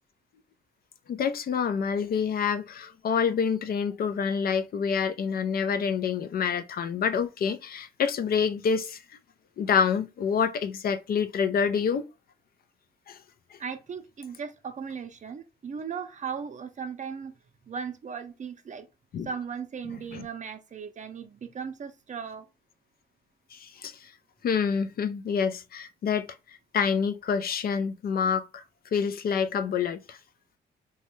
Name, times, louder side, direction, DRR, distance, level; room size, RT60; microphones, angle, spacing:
voice 1, 1.1-9.0 9.6-12.0 13.1-13.2 19.1-19.3 20.1-20.2 23.5-23.9 24.4-26.3 26.7-28.6 28.9-30.2, left 6 dB, 50° left, 0.4 m, -27 dB
voice 2, 13.6-17.3 17.7-18.9 19.2-22.5, right 6 dB, 40° right, 0.6 m, -37 dB
3.0 x 2.3 x 3.0 m
cardioid pair, 90°, 20 cm